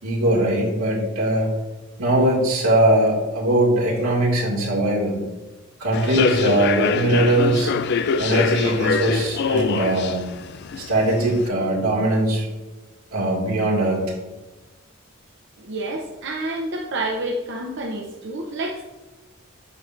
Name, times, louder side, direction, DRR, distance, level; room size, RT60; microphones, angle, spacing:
voice 1, 0.0-1.5 2.0-5.2 5.8-7.7 8.2-10.2 10.8-12.5 13.1-14.0, right 1 dB, 90° right, -3 dB, 2.2 m, -20 dB
Human voice / Subway metro underground, 5.9-11.5, left 5 dB, 50° left, 0.3 m, -24 dB
voice 2, 15.6-18.8, right 1 dB, 55° right, -1 dB, 0.7 m, -29 dB
8.2 x 5.9 x 2.5 m, 1.1 s
head